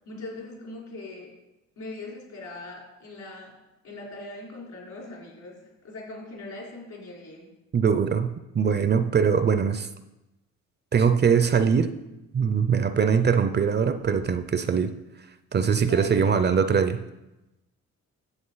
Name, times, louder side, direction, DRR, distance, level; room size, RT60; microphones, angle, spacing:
voice 1, 0.0-1.3 1.8-3.6 3.8-7.5 15.9-16.5, left 2 dB, 70° left, 4.0 m, -40 dB
voice 2, 7.7-9.9 10.9-11.9 12.3-14.9 15.5-17.0, right 6 dB, 35° right, 0.6 m, -22 dB
9.9 x 7.8 x 4.0 m
cardioid pair, 90°, 30 cm